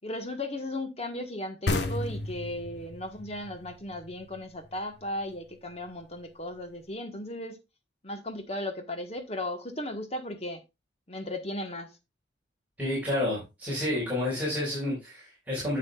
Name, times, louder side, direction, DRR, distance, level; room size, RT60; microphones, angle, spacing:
voice 1, 0.0-7.6 8.0-10.6 11.1-11.9, left 1 dB, 35° left, 1.3 m, -36 dB
sound 1, 1.7-5.1, left 2 dB, 70° left, 1.3 m, -33 dB
voice 2, 12.8-15.8, left 1 dB, 10° right, 4.6 m, -30 dB
10.5 x 7.5 x 2.4 m
head